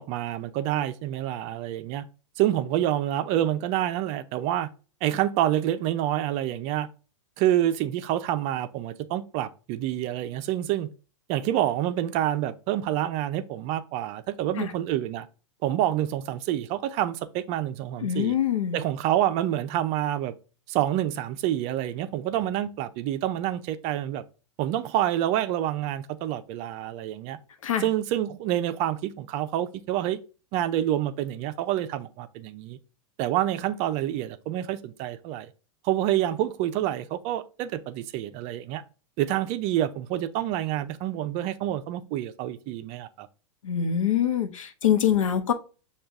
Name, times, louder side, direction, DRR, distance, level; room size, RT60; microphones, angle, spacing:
voice 1, 0.0-2.0 2.4-4.7 5.0-6.9 7.4-10.9 11.3-15.3 15.6-18.3 18.7-20.3 20.7-24.2 24.6-27.4 27.8-30.2 30.5-32.8 33.2-35.5 35.8-38.8 39.2-43.3, right 12 dB, 40° right, 0.5 m, -27 dB
voice 2, 18.0-18.8 27.6-27.9 43.6-45.5, left 9 dB, 80° left, 0.8 m, -24 dB
6.4 x 2.4 x 3.5 m
hypercardioid pair, 110°, 16 cm